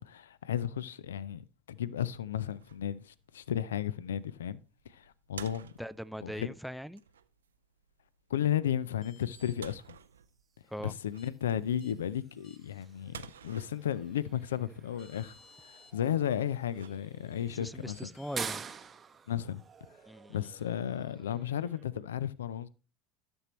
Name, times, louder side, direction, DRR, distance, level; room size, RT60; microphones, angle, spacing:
voice 1, 0.0-4.6 4.9-5.7 6.2-6.5 8.3-10.0 10.8-15.4 15.6-18.0 19.3-19.6 20.3-22.7, left 10 dB, 75° left, 0.4 m, -34 dB
sound 1, 2.4-17.5, right 8 dB, 80° right, 0.3 m, -54 dB
voice 2, 5.8-7.0 10.7-10.9 17.5-18.6 20.1-20.5, equal, ahead, 0.3 m, -40 dB
sound 2, 9.0-9.5 11.2-11.3 11.8-11.9 12.4-12.9 14.5-14.6 15.0-15.9 17.9-18.4, left 2 dB, 50° left, 2.0 m, -57 dB
sound 3, 9.9-21.9, right 6 dB, 30° right, 0.7 m, -48 dB
12.5 x 6.2 x 3.0 m
figure-of-eight pair, 70°, 0 cm